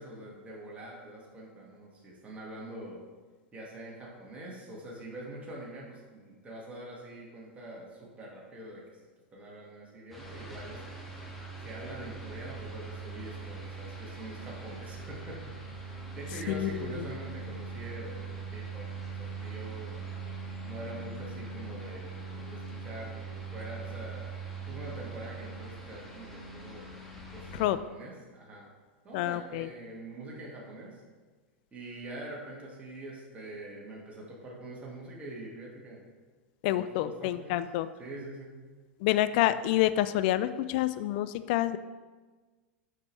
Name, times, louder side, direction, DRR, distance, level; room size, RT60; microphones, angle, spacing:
voice 1, 0.0-3.0 3.5-8.8 9.3-11.0 11.6-15.4 16.2-20.0 20.6-26.9 27.3-28.7 29.0-31.0 31.7-36.0 36.7-37.6 38.0-38.6 39.3-39.4, right 1 dB, 20° right, -4 dB, 1.9 m, -44 dB
sound 1, 10.1-27.7, right 4 dB, 5° left, 1.6 m, -41 dB
voice 2, 16.5-17.1 27.5-27.8 29.1-29.7 36.6-37.9 39.0-41.8, left 14 dB, 55° left, 14 dB, 0.3 m, -28 dB
7.5 x 5.9 x 3.3 m, 1.4 s
hypercardioid pair, 95°, 6 cm